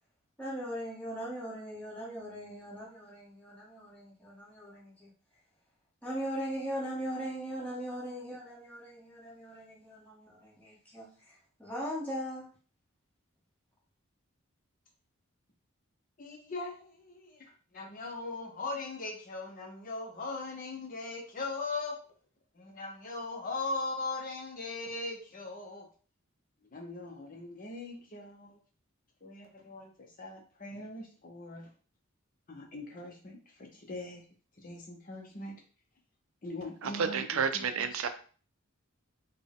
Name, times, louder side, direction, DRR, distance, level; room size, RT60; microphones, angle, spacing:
voice 1, 0.4-5.1 6.0-12.5, equal, 5° left, 1.4 m, -39 dB
voice 2, 16.2-17.5 17.7-22.0 22.6-25.9 26.7-28.6 29.2-31.7 32.5-34.2 34.6-35.6 36.4-37.9, left 3 dB, 40° left, 0.7 m, -40 dB
voice 3, 36.8-38.1, right 6 dB, 75° right, 0.4 m, -30 dB
4.1 x 2.2 x 3.5 m
head